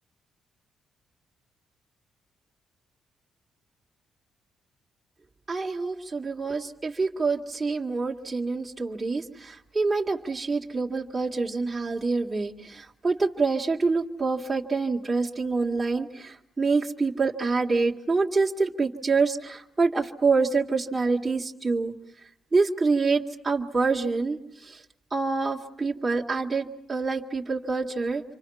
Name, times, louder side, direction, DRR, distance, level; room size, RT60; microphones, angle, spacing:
voice 1, 5.5-21.9 22.5-24.8 25.1-28.2, right 4 dB, 20° right, -3 dB, 2.1 m, -26 dB
28.5 x 24.5 x 5.7 m, 0.77 s
cardioid pair, 90°, 0 cm